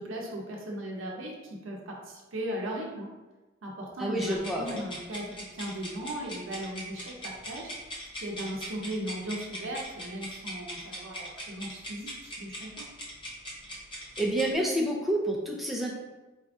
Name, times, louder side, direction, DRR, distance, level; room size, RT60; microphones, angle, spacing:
voice 1, 0.0-3.1 3.6-7.7 8.1-12.9, right 1 dB, 80° right, -1 dB, 0.7 m, -37 dB
voice 2, 4.0-4.8 14.2-15.9, right 1 dB, ahead, -2 dB, 0.5 m, -28 dB
sound 1, 4.2-14.5, equal, 25° left, 0.8 m, -41 dB
4.2 x 2.5 x 3.5 m, 1.2 s
head